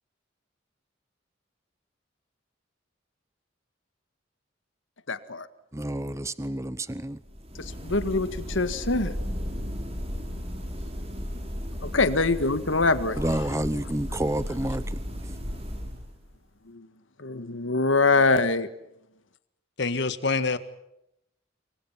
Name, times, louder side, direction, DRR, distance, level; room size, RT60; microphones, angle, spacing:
voice 1, 5.1-5.5 7.6-9.1 11.8-13.6 16.7-16.9 17.2-18.7, left 3 dB, 80° left, 12 dB, 1.7 m, -24 dB
voice 2, 5.7-7.2 13.2-15.0, right 1 dB, 15° right, 15 dB, 0.9 m, -29 dB
sound 1, 7.2-16.4, equal, 30° right, 6.4 m, -35 dB
voice 3, 19.8-20.6, left 4 dB, 60° left, 12 dB, 1.8 m, -26 dB
28.0 x 24.0 x 5.8 m, 0.81 s
head